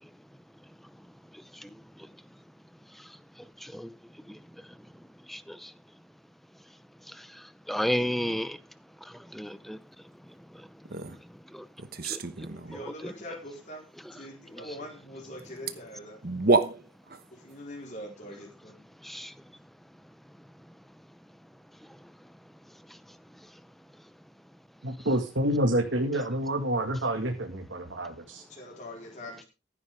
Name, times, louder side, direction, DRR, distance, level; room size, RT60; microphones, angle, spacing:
voice 1, 5.3-5.7 7.7-8.6 9.3-9.8 11.5-11.6 12.0-12.2 19.0-19.3, equal, ahead, 0.7 m, -31 dB
sound 1, 10.8-11.2 11.8-12.8 15.4-15.5 15.7-15.8 16.2-17.2, right 3 dB, 50° right, 1.1 m, -28 dB
voice 2, 12.5-16.2 17.3-18.9 28.5-29.4, left 1 dB, 40° left, 4.4 m, -43 dB
voice 3, 24.8-28.4, right 1 dB, 70° right, 2.2 m, -28 dB
15.0 x 9.8 x 3.7 m
head